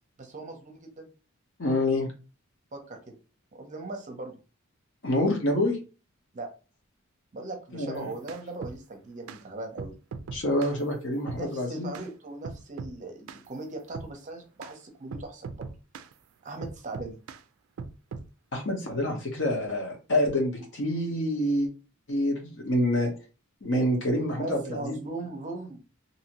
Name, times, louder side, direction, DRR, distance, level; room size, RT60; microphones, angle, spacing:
voice 1, 0.2-1.1 2.7-3.1 3.5-4.4 6.3-6.5 7.3-9.9 11.4-15.7 16.4-17.2 24.4-25.8, right 2 dB, 35° right, 4 dB, 0.6 m, -39 dB
voice 2, 1.6-2.1 5.0-5.8 7.7-8.1 10.3-11.9 18.5-21.7 22.1-23.1 23.6-25.0, left 1 dB, 60° left, 2 dB, 0.9 m, -27 dB
sound 1, 7.9-8.8 9.3-9.4 9.8-10.8 11.3-11.5 11.9-12.1 12.4-13.0 13.3-13.5 13.9-14.1 14.6-14.7 15.1-16.1 16.6-17.4 17.8-18.3, right 5 dB, 75° right, 0.3 m, -39 dB
2.8 x 2.6 x 2.9 m, 0.34 s
head